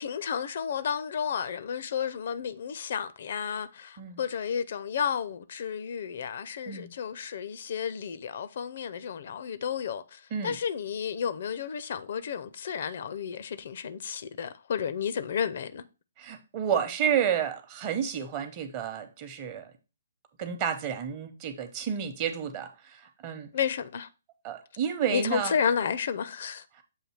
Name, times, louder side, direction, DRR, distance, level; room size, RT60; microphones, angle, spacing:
voice 1, 0.0-15.8 23.5-24.1 25.1-26.6, left 7 dB, 50° left, 0.5 m, -32 dB
voice 2, 16.2-19.7 20.4-23.5 24.4-25.5 26.7-26.8, right 8 dB, 30° right, 0.8 m, -31 dB
7.3 x 2.7 x 5.6 m
figure-of-eight pair, 130°, 0 cm